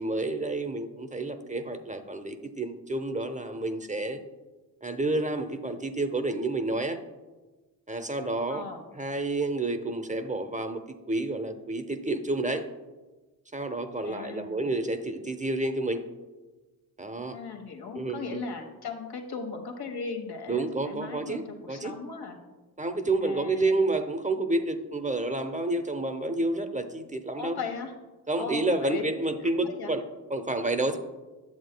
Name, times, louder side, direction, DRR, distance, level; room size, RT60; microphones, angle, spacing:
voice 1, 0.0-4.2 4.8-7.0 7.9-8.6 9.0-10.8 11.1-12.6 13.5-16.0 17.0-17.4 18.0-18.4 20.5-21.9 22.8-27.6 28.3-30.0 30.3-31.0, right 2 dB, 20° right, 8 dB, 0.7 m, -29 dB
voice 2, 8.5-8.9 14.0-14.6 17.3-22.4 23.2-23.7 27.4-27.9 28.4-29.0 29.5-29.9, left 5 dB, 70° left, 2 dB, 1.3 m, -38 dB
9.4 x 7.5 x 2.2 m, 1.2 s
cardioid pair, 55°, 40 cm